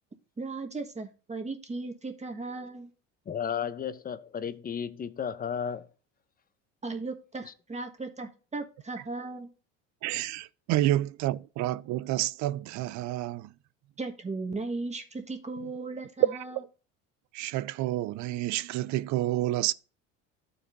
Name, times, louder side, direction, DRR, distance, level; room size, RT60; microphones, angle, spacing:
voice 1, 0.4-2.9 6.8-9.5 14.0-16.6, right 3 dB, 20° right, 1.4 m, -36 dB
voice 2, 3.3-5.9 7.5-7.6, left 7 dB, 25° left, 0.6 m, -33 dB
voice 3, 10.0-13.5 16.2-16.6 17.3-19.7, right 15 dB, 50° right, 0.5 m, -29 dB
14.0 x 4.8 x 2.6 m
hypercardioid pair, 75°, 37 cm